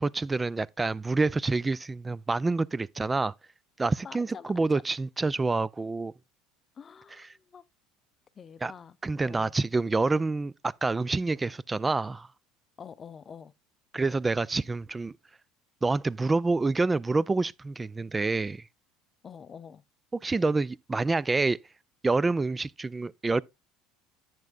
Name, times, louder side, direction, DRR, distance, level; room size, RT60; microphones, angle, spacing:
voice 1, 0.0-3.3 3.8-6.1 8.6-8.7 9.0-12.3 13.9-15.1 15.8-18.6 20.2-21.6 22.0-23.4, right 3 dB, 20° right, 0.4 m, -27 dB
voice 2, 4.0-4.5 6.8-7.6 8.4-9.0 9.2-9.5 12.8-13.5 19.2-19.8, left 7 dB, 35° left, 0.6 m, -46 dB
10.5 x 8.2 x 2.4 m
hypercardioid pair, 80°, 0 cm